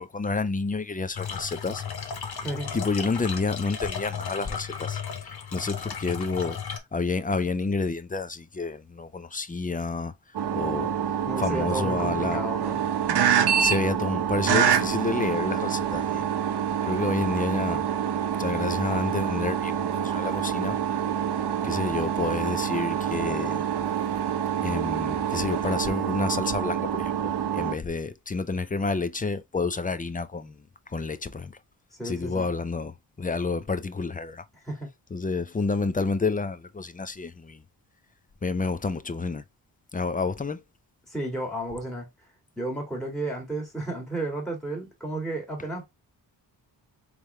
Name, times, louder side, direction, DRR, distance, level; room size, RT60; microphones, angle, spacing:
voice 1, 0.0-1.8 2.7-5.0 5.5-6.6 6.9-10.1 10.5-10.9 11.4-12.4 13.6-16.3 16.8-17.8 18.4-20.8 21.6-23.6 24.6-30.5 30.9-31.5 32.0-34.4 35.1-37.6 38.4-39.4 39.9-40.6, left 4 dB, 20° left, 0.5 m, -29 dB
sound 1, 1.1-6.8, left 7 dB, 55° left, 1.0 m, -35 dB
voice 2, 2.3-2.7 11.3-12.8 32.0-32.5 34.6-34.9 41.1-42.1 42.6-45.8, right 1 dB, ahead, 1.8 m, -32 dB
sound 2, 10.3-27.7, right 8 dB, 60° right, 0.8 m, -26 dB
3.5 x 3.2 x 3.1 m
cardioid pair, 60°, 44 cm